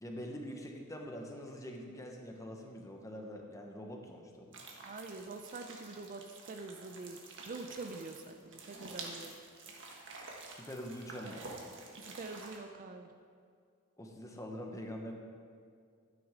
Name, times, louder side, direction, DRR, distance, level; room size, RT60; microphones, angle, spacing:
voice 1, 0.0-4.6 10.5-11.6 14.0-15.1, equal, 15° left, 1 dB, 1.0 m, -44 dB
sound 1, 4.5-12.6, right 3 dB, 55° right, 1.4 m, -49 dB
voice 2, 4.8-7.2 7.5-9.4 12.0-13.1, right 3 dB, 35° right, 6 dB, 0.5 m, -45 dB
12.5 x 9.5 x 3.7 m, 2.2 s
head